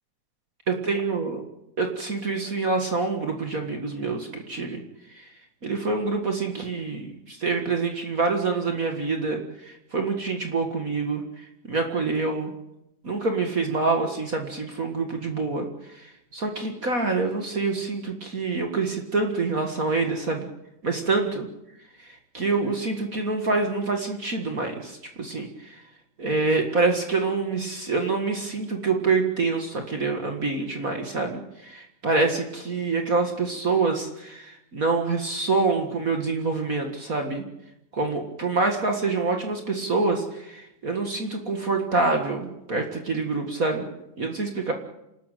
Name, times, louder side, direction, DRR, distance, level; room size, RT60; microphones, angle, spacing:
voice 1, 0.7-1.4 1.8-4.8 5.6-9.4 9.6-11.2 11.7-12.5 13.0-15.7 16.3-20.5 20.8-21.5 22.3-25.5 26.2-31.4 31.7-37.4 37.9-43.8 44.2-44.7, right 3 dB, 35° right, 4 dB, 1.4 m, -26 dB
28.0 x 13.0 x 9.1 m, 0.90 s
omnidirectional pair, 3.8 m